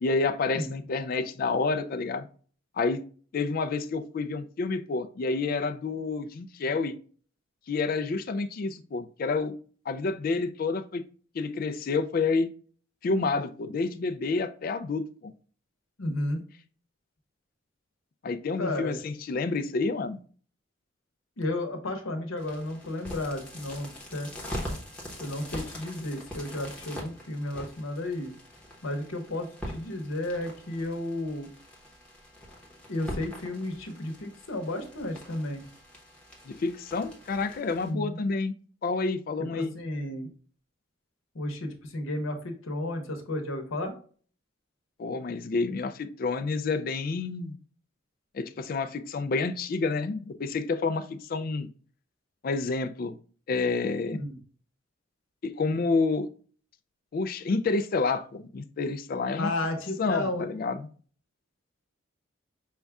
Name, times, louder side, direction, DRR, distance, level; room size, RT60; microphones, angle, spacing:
voice 1, 0.0-2.3 2.8-3.0 3.3-6.9 7.7-9.5 9.9-11.0 11.3-12.5 13.0-15.3 18.2-20.2 36.5-38.5 38.8-39.7 45.0-47.6 48.3-51.7 52.4-53.1 53.5-54.2 55.4-56.3 57.1-59.5 60.0-60.8, left 4 dB, 45° left, 11 dB, 0.3 m, -29 dB
voice 2, 16.0-16.4 18.5-19.0 21.4-24.3 25.2-28.3 28.8-31.5 32.9-35.6 37.8-38.2 39.5-40.3 41.3-43.9 54.1-54.3 59.4-60.5, left 1 dB, 85° left, 4 dB, 0.9 m, -33 dB
sound 1, 22.4-37.9, equal, 5° left, 1.0 m, -43 dB
5.3 x 2.4 x 3.4 m, 0.43 s
head